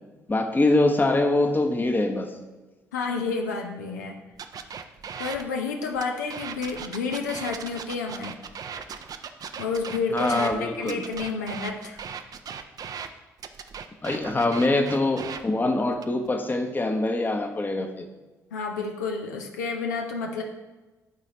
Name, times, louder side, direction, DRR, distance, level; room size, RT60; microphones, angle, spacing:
voice 1, 0.3-2.3 10.1-11.0 14.0-18.1, left 2 dB, 20° left, 5 dB, 0.8 m, -24 dB
voice 2, 2.9-4.2 5.2-8.3 9.6-12.0 18.5-20.4, left 4 dB, 80° left, 3 dB, 0.6 m, -30 dB
sound 1, 4.4-5.4 5.9-10.5 10.9-13.1 13.4-15.4 15.9-16.3, right 7 dB, 45° right, 0.5 m, -37 dB
11.0 x 4.1 x 2.8 m, 1.2 s
figure-of-eight pair, 45°, 9 cm